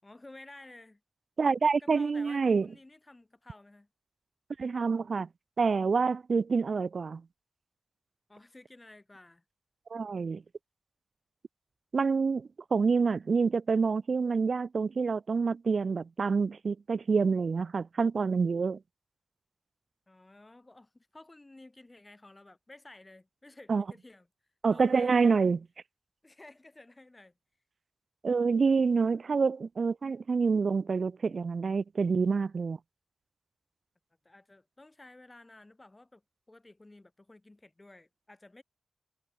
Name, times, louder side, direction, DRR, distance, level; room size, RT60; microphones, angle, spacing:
voice 1, 0.0-1.0 1.8-3.9 8.3-9.4 20.1-24.3 24.7-25.2 26.2-27.3 34.2-36.2 36.5-38.6, left 2 dB, 20° left, 6.5 m, -53 dB
voice 2, 1.4-2.7 4.6-5.3 5.6-7.2 9.9-10.4 11.9-18.8 23.7-23.8 24.6-25.7 28.2-32.8, right 5 dB, 60° right, 0.8 m, -27 dB
wide cardioid pair, 135°, 0 cm